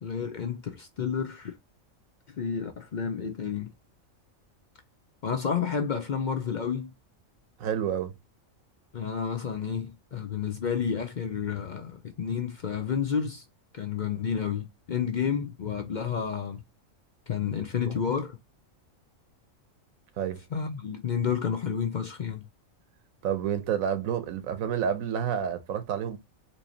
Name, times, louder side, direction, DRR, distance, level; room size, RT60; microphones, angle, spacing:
voice 1, 0.0-1.5 2.4-3.7 5.2-6.9 8.9-13.4 13.7-16.6 17.3-18.4 20.5-22.4, left 7 dB, 55° left, 0.5 m, -30 dB
voice 2, 7.6-8.1 20.2-20.4 23.2-26.2, right 8 dB, 90° right, 1.2 m, -29 dB
4.5 x 2.7 x 2.7 m
omnidirectional pair, 1.4 m